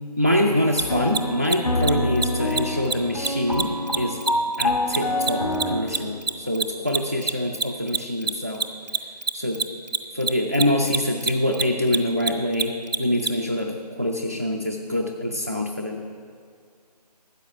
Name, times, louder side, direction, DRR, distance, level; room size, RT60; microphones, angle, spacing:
voice 1, 0.2-4.2 4.6-8.6 9.3-9.6 10.1-12.7 13.0-16.0, left 1 dB, 25° right, 2 dB, 0.3 m, -25 dB
Mechanisms, 0.7-0.8 1.1-1.2 1.4-1.6 1.8-2.3 2.5-2.6 2.8-2.9 3.2-6.0 6.2-13.3, right 5 dB, 80° right, 0.8 m, -24 dB
sound 1, 0.8-5.8, left 1 dB, 60° left, 2.0 m, -26 dB
13.0 x 8.1 x 5.7 m, 2.2 s
figure-of-eight pair, 155°, 21 cm